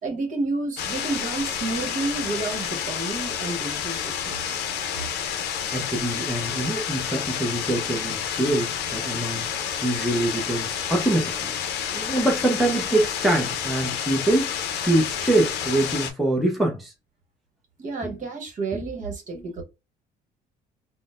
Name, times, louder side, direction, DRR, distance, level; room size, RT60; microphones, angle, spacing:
voice 1, 0.0-4.6 17.8-19.6, right 3 dB, 50° right, 1.1 m, -30 dB
sound 1, 0.8-16.1, left 8 dB, 75° left, 0.5 m, -29 dB
voice 2, 5.7-11.5 11.9-16.9 18.0-18.2 18.7-18.9, right 1 dB, ahead, 0.7 m, -25 dB
3.8 x 2.1 x 2.5 m
cardioid pair, 110°, 17 cm